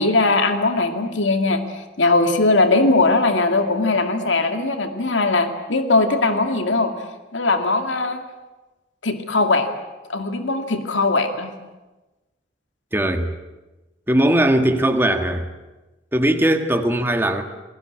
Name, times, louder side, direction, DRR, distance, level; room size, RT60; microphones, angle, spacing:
voice 1, 0.0-1.6 2.0-6.9 7.3-8.2 9.0-9.7 10.1-11.5, left 3 dB, 85° left, 6 dB, 2.3 m, -19 dB
voice 2, 12.9-13.3 14.1-15.4 16.1-17.4, right 1 dB, 10° right, 6 dB, 1.6 m, -19 dB
28.5 x 19.5 x 8.7 m, 1.1 s
head